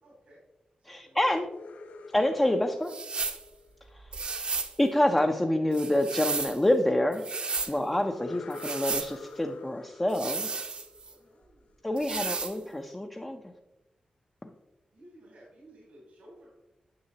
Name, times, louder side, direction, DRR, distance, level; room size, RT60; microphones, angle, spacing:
voice 1, 0.0-0.4 0.8-1.2 7.6-7.8 11.0-11.8 12.5-12.7 14.9-16.5, right 1 dB, 90° right, -5 dB, 2.8 m, -55 dB
voice 2, 0.8-1.5 2.1-2.9 3.9-4.1 4.8-7.2 7.7-10.5 11.8-13.5, left 1 dB, 10° left, 3 dB, 0.5 m, -27 dB
sound 1, 1.4-4.3 8.0-11.7, left 4 dB, 80° left, 0.6 m, -47 dB
sound 2, 2.9-3.4 4.1-4.7 5.7-6.6 7.1-7.7 8.5-9.1 10.1-11.1 12.0-12.6, right 4 dB, 50° right, 0.7 m, -33 dB
9.6 x 6.6 x 2.8 m, 0.96 s
wide cardioid pair, 140°, 2 cm